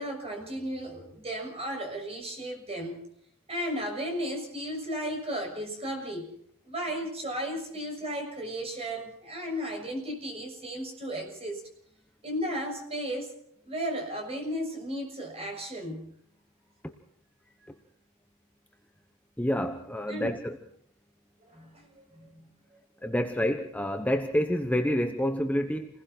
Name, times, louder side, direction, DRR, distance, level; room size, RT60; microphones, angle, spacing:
voice 1, 0.0-3.0 3.5-6.3 6.6-11.6 12.2-13.3 13.6-16.1 20.1-20.3 21.4-22.5, equal, 25° right, 3 dB, 6.7 m, -34 dB
voice 2, 19.4-20.6 23.0-25.9, equal, 5° left, 5 dB, 1.0 m, -28 dB
29.0 x 20.5 x 4.4 m, 0.66 s
head